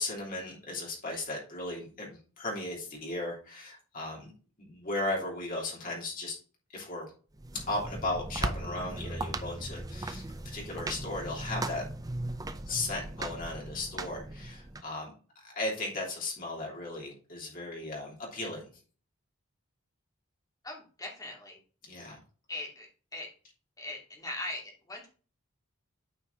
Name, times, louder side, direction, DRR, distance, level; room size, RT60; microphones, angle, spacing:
voice 1, 0.0-4.3 4.6-6.4 6.7-7.1 7.7-10.2 10.5-11.8 12.7-15.1 15.4-18.7 21.9-22.2, left 2 dB, 40° left, -2 dB, 3.1 m, -36 dB
sound 1, 7.3-14.8, right 2 dB, 15° right, 0.5 m, -38 dB
voice 2, 20.6-21.6 22.5-23.3 23.8-25.1, left 2 dB, 15° left, -1 dB, 2.6 m, -40 dB
9.1 x 4.8 x 3.9 m, 0.37 s
head